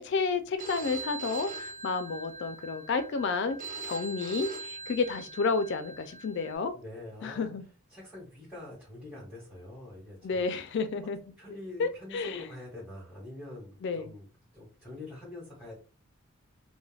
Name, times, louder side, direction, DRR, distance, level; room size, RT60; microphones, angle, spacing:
voice 1, 0.0-3.6 3.8-6.7 7.2-7.7 10.2-11.2 11.8-12.5 13.8-14.1, left 4 dB, 55° left, 0.4 m, -31 dB
Telephone, 0.6-6.6, right 4 dB, 40° right, 0.5 m, -42 dB
voice 2, 6.7-7.5 7.9-10.4 11.4-14.3 14.5-15.7, left 2 dB, 5° right, 1.1 m, -45 dB
2.3 x 2.2 x 3.2 m
head